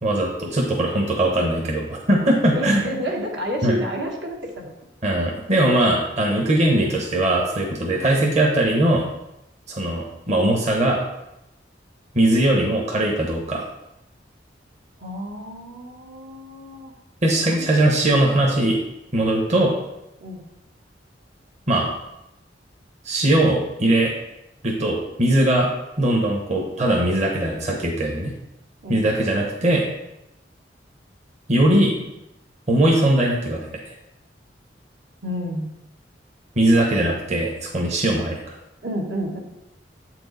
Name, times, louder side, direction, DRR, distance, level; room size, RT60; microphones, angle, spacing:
voice 1, 0.0-2.8 3.6-3.8 5.0-9.0 9.7-11.0 12.1-13.7 17.2-18.8 19.1-19.7 21.7-21.9 23.0-24.1 24.6-25.7 26.0-28.3 28.9-29.9 31.5-31.9 32.7-33.6 36.6-38.6, right 1 dB, 40° right, -1 dB, 1.0 m, -20 dB
voice 2, 2.5-4.7 15.0-16.9 17.5-17.6 20.2-20.4 28.8-29.1 35.2-35.7 38.8-39.4, equal, 75° right, 0 dB, 1.3 m, -30 dB
8.1 x 4.6 x 4.0 m, 0.89 s
head